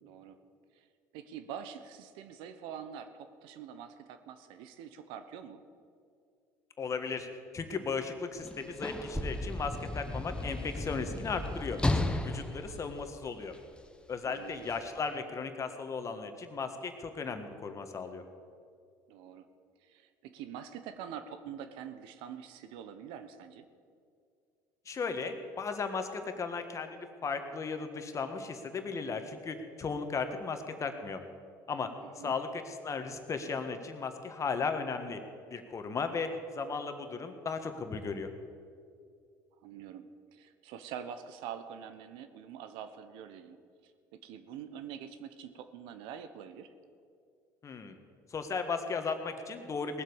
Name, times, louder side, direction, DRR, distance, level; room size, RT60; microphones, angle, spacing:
voice 1, 0.0-0.4 0.7-0.9 1.1-5.6 14.2-14.7 19.1-19.5 19.8-23.7 32.0-32.4 39.6-43.9 44.2-46.7, right 8 dB, 75° right, 10 dB, 1.0 m, -45 dB
voice 2, 6.8-7.3 7.5-13.5 14.1-18.2 24.8-31.2 31.7-31.9 32.2-35.2 35.5-38.3 47.6-47.9 48.3-50.0, left 5 dB, 35° left, 7 dB, 1.6 m, -36 dB
Sliding door / Slam, 8.4-13.8 14.7-14.8, left 1 dB, 10° left, 1.0 m, -34 dB
18.5 x 7.7 x 7.1 m, 2.3 s
supercardioid pair, 85°, 9 cm